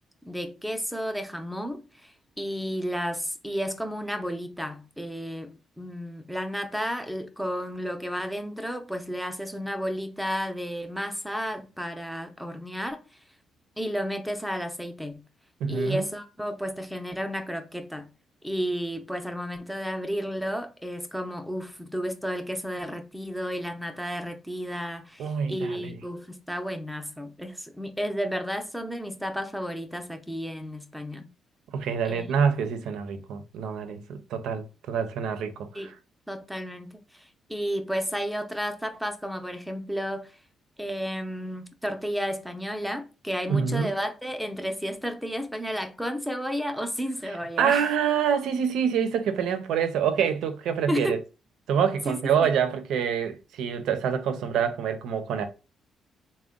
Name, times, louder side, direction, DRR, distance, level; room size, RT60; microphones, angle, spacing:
voice 1, 0.2-2.1 2.4-13.0 13.8-15.2 15.7-18.1 18.4-31.3 32.1-32.3 35.7-35.9 36.3-40.4 40.8-47.8 50.9-51.2 52.1-52.2, equal, ahead, 0.6 m, -32 dB
voice 2, 15.6-16.1 25.2-26.0 31.7-35.9 43.5-43.9 47.2-51.2 51.7-55.5, right 7 dB, 80° right, 0.6 m, -26 dB
3.6 x 2.2 x 3.6 m
cardioid pair, 90°, 0 cm